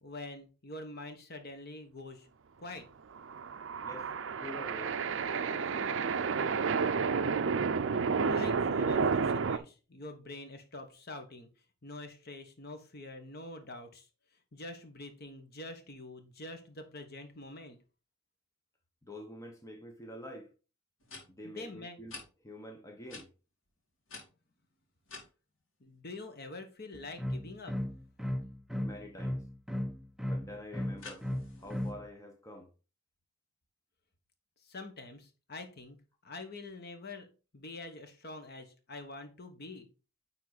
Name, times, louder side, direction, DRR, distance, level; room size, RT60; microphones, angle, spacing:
voice 1, 0.0-2.3 2.6-2.9 8.2-11.5 11.8-14.1 14.5-17.8 21.4-22.0 25.8-27.8 34.6-36.0 36.2-37.3 37.5-39.9, left 2 dB, 45° left, 1.2 m, -45 dB
sound 1, 3.2-9.6, right 5 dB, 60° right, 0.5 m, -31 dB
voice 2, 3.8-6.2 19.0-20.5 21.3-22.1 22.4-23.3 28.8-29.4 30.3-31.3 31.6-32.7, left 1 dB, 15° left, 0.9 m, -47 dB
sound 2, 20.2-20.3 21.0-21.2 22.1-22.2 23.1-23.2 24.1-25.3 31.0-31.9, left 3 dB, 70° left, 2.4 m, -48 dB
sound 3, 26.9-32.0, left 1 dB, ahead, 0.3 m, -35 dB
9.6 x 3.7 x 4.0 m
head